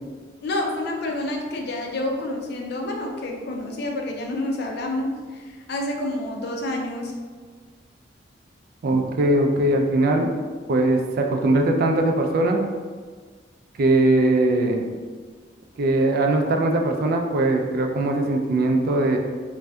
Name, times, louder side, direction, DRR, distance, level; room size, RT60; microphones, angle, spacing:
voice 1, 0.4-7.2, left 1 dB, 65° left, 1 dB, 0.5 m, -28 dB
voice 2, 8.8-10.3 10.7-12.6 13.8-14.8 15.8-19.2, right 2 dB, 55° right, 3 dB, 0.3 m, -20 dB
2.6 x 2.2 x 3.3 m, 1.5 s
head